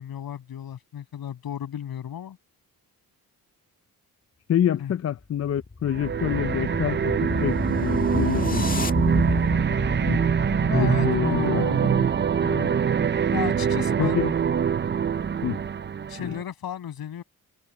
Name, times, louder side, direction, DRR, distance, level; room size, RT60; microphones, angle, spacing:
voice 1, 0.0-2.4 4.8-4.9 10.7-12.1 12.4-12.7 13.3-14.2 16.1-17.2, left 9 dB, 75° left, 6.7 m, -34 dB
voice 2, 4.5-8.9 10.1-10.2 10.7-11.6 11.9-12.0 14.0-14.3 15.4-15.6 16.2-16.4, left 10 dB, 45° left, 0.5 m, -27 dB
sound 1, 5.2-11.6, left 3 dB, 25° left, 1.7 m, -30 dB
sound 2, 5.9-16.4, right 7 dB, 30° right, 0.5 m, -24 dB
cardioid pair, 110°, 36 cm